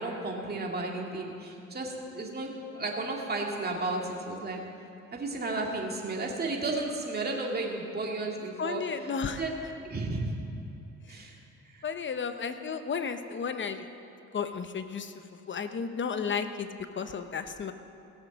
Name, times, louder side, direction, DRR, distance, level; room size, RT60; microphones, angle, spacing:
voice 1, 0.0-4.6 5.1-9.1 9.4-9.5 9.8-10.4 11.1-11.4 11.7-11.8, right 2 dB, 30° right, 0 dB, 2.2 m, -33 dB
voice 2, 8.6-9.4 11.8-13.9 14.3-15.1 15.5-17.7, left 6 dB, 40° left, 9 dB, 0.9 m, -33 dB
17.0 x 7.3 x 7.1 m, 2.8 s
cardioid pair, 90°, 30 cm